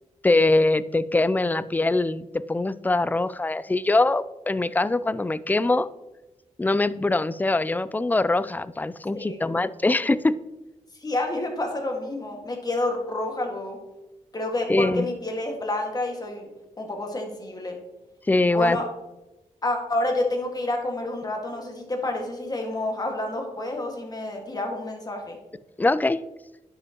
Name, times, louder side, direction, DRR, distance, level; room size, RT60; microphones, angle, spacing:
voice 1, 0.2-5.9 6.6-10.4 14.7-15.1 18.3-18.8 25.8-26.2, left 2 dB, 15° left, 16 dB, 0.3 m, -23 dB
voice 2, 10.9-13.8 14.3-16.5 16.8-17.7 18.5-18.9 19.6-25.4, left 2 dB, 30° left, 2 dB, 1.8 m, -29 dB
10.0 x 6.2 x 3.0 m, 1.0 s
cardioid pair, 75°, 13 cm